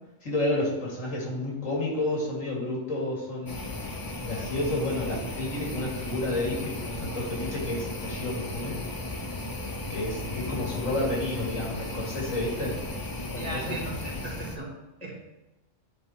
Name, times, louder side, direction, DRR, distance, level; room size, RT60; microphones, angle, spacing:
voice 1, 0.2-3.6 4.2-8.8 9.9-12.7 13.3-13.7, left 1 dB, 85° left, -3 dB, 2.4 m, -30 dB
sound 1, 3.5-14.6, left 2 dB, 30° left, 0.4 m, -35 dB
voice 2, 13.3-14.7 15.0-15.1, right 1 dB, 30° right, -4 dB, 1.6 m, -36 dB
10.0 x 3.6 x 4.2 m, 1.0 s
omnidirectional pair, 1.3 m